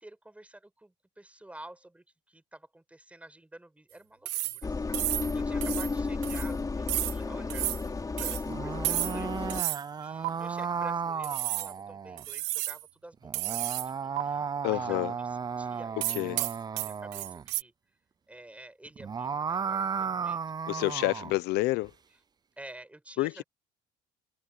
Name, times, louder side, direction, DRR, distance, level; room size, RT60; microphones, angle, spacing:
voice 1, 0.0-9.7 10.0-17.7 18.3-20.4 22.6-23.4, right 1 dB, 5° right, 7.9 m, -50 dB
sound 1, 4.3-4.6 4.9-5.3 5.6-5.9 6.2-6.5 6.9-7.2 7.5-7.8 8.2-8.4 8.8-9.2 9.5-9.8 10.2-10.3 11.2-11.7 12.2-12.8 13.3-13.9 14.2-14.3 16.0-17.6, right 19 dB, 80° right, 1.4 m, -32 dB
Engine, 4.6-9.6, left 4 dB, 20° left, 4.3 m, -33 dB
sound 2, 8.4-12.2 13.2-17.4 18.9-21.4, right 6 dB, 25° right, 0.5 m, -34 dB
voice 2, 14.6-15.1 16.1-16.4 20.7-21.9 23.2-23.4, left 19 dB, 75° left, 1.0 m, -28 dB
supercardioid pair, 105°, 18 cm